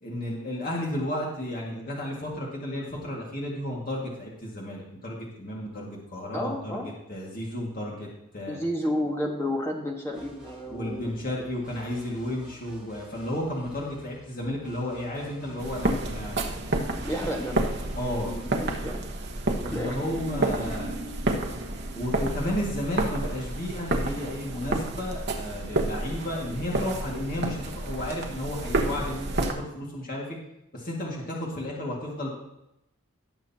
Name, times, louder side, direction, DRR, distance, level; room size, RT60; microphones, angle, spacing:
voice 1, 0.0-8.1 8.3-8.6 10.7-16.4 18.0-18.3 19.6-21.0 21.9-30.3 30.7-32.4, left 1 dB, 40° left, -3 dB, 2.0 m, -33 dB
voice 2, 6.3-6.9 8.5-11.1 17.0-17.7 18.2-19.1 19.5-19.9, left 1 dB, 10° left, 0 dB, 1.5 m, -31 dB
sound 1, 10.1-18.8, right 1 dB, 5° right, 2.1 m, -51 dB
sound 2, 15.6-29.5, right 2 dB, 50° right, 1.2 m, -30 dB
17.5 x 7.0 x 2.9 m, 0.87 s
head